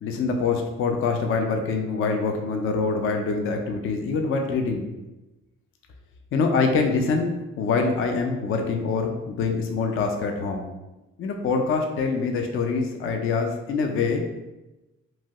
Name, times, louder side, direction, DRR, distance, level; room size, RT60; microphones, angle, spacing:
voice 1, 0.0-4.9 6.3-7.3 7.6-10.7 11.2-14.2, left 4 dB, 45° left, 4 dB, 0.4 m, -25 dB
2.9 x 2.2 x 2.8 m, 1.0 s
cardioid pair, 90°, 30 cm